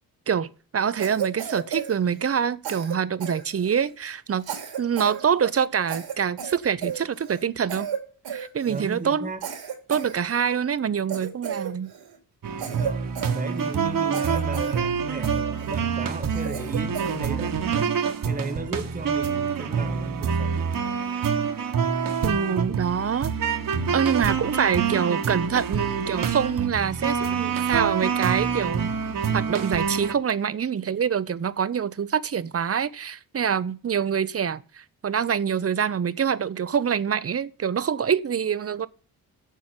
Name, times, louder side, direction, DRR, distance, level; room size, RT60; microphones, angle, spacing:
voice 1, 0.3-4.4 4.8-7.9 8.3-9.3 9.9-11.9 22.2-23.3 23.9-28.9 29.3-38.9, right 7 dB, 40° right, 0.8 m, -25 dB
Cough, 1.0-2.4 2.6-3.9 4.4-5.2 5.5-5.6 5.9-7.4 7.7-8.9 9.4-10.6 11.1-12.2 12.6-13.8 14.1-14.8 15.2-15.8 16.3-17.2, right 8 dB, 90° right, 2.7 m, -34 dB
voice 2, 8.7-9.4 12.5-20.7, right 3 dB, 20° right, 1.5 m, -35 dB
sound 1, 12.4-30.1, right 6 dB, 60° right, 1.6 m, -26 dB
8.2 x 7.5 x 7.8 m
cardioid pair, 70°, 37 cm